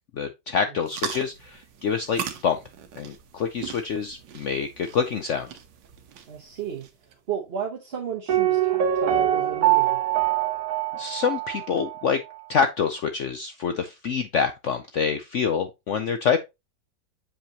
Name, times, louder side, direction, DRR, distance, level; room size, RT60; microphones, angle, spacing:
voice 1, 0.1-2.6 3.0-5.5 10.9-12.2 12.5-16.4, left 6 dB, 70° left, 0.7 m, -26 dB
sound 1, 0.8-7.2, right 8 dB, 80° right, 1.6 m, -39 dB
voice 2, 6.3-10.0, right 7 dB, 40° right, 1.0 m, -33 dB
Piano, 8.3-12.1 12.3-12.4, right 12 dB, 60° right, 1.2 m, -23 dB
7.5 x 5.1 x 2.8 m
omnidirectional pair, 2.0 m